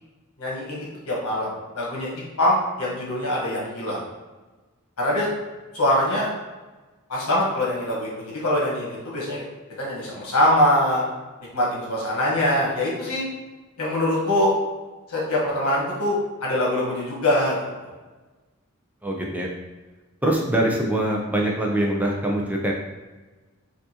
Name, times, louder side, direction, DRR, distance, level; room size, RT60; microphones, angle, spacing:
voice 1, 0.4-1.5 1.7-2.1 2.4-4.0 5.0-5.3 5.7-6.3 7.1-9.4 9.8-11.0 11.5-13.2 13.8-14.5 15.1-17.6, left 1 dB, 90° left, -4 dB, 1.3 m, -23 dB
voice 2, 19.0-19.5 20.2-22.7, right 1 dB, 5° right, -1 dB, 0.4 m, -23 dB
4.5 x 2.6 x 2.8 m, 1.2 s
head